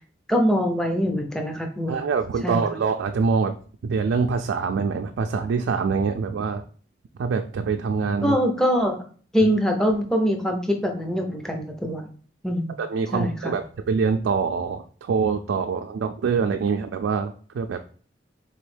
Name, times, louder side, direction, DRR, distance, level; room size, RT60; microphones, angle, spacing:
voice 1, 0.3-2.0 2.4-2.6 8.2-9.0 9.3-12.1 12.4-12.7 13.1-13.3, equal, 5° left, 3 dB, 0.5 m, -23 dB
voice 2, 1.9-3.5 3.8-6.6 7.2-8.4 9.4-9.5 12.8-17.8, right 5 dB, 90° right, 5 dB, 0.3 m, -25 dB
3.9 x 3.0 x 3.2 m, 0.43 s
head